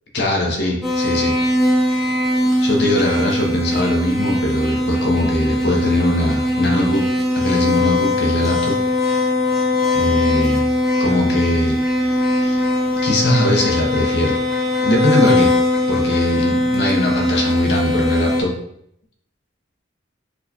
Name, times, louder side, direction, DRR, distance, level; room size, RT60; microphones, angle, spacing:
voice 1, 0.1-1.4 1.8-2.0 2.6-7.1 7.3-8.8 9.0-9.2 9.9-10.6 11.0-11.8 12.0-12.6 13.0-14.4 14.8-15.5 15.9-18.5, left 1 dB, 60° left, 1 dB, 0.6 m, -21 dB
sound 1, 0.8-18.4, left 1 dB, ahead, 0.5 m, -20 dB
4.2 x 2.2 x 2.7 m, 0.74 s
head